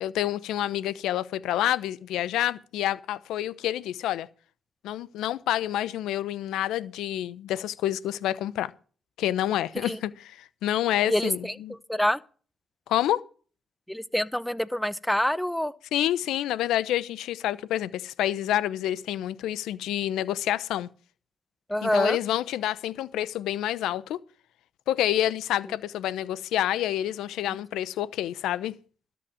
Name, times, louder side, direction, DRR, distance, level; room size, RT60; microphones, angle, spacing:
voice 1, 0.0-4.3 4.8-8.7 9.2-11.7 12.9-13.2 15.9-20.9 21.8-24.2 24.9-28.7, left 12 dB, 80° left, 0.8 m, -28 dB
voice 2, 11.1-12.2 13.9-15.7 21.7-22.2 27.5-27.6, left 1 dB, 5° left, 0.9 m, -26 dB
13.0 x 6.2 x 7.8 m
supercardioid pair, 55°, 0 cm